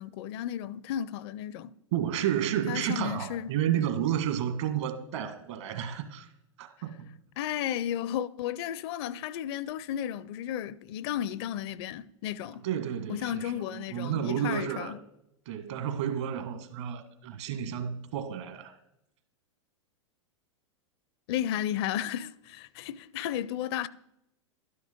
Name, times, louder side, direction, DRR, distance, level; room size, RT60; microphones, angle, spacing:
voice 1, 0.0-1.7 2.7-3.5 7.4-12.6 13.1-15.0 21.3-23.9, left 11 dB, 55° left, 0.5 m, -33 dB
voice 2, 1.9-6.3 6.6-7.1 12.6-15.0 15.5-18.8, right 10 dB, 65° right, 1.7 m, -31 dB
12.5 x 9.6 x 5.2 m
hypercardioid pair, 95°, 16 cm